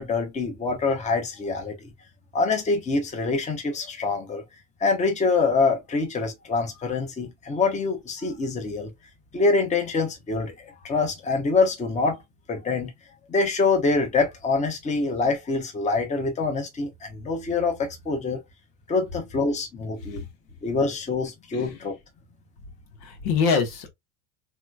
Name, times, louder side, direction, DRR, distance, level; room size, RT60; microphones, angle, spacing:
voice 1, 0.0-1.8 2.3-4.4 4.8-8.9 9.3-12.2 12.5-12.9 13.3-18.4 18.9-20.2 20.6-21.9, left 3 dB, 20° left, 0.8 m, -25 dB
voice 2, 23.0-23.9, left 5 dB, 85° left, 1.3 m, -25 dB
3.1 x 3.0 x 2.3 m
supercardioid pair, 130°, 40 cm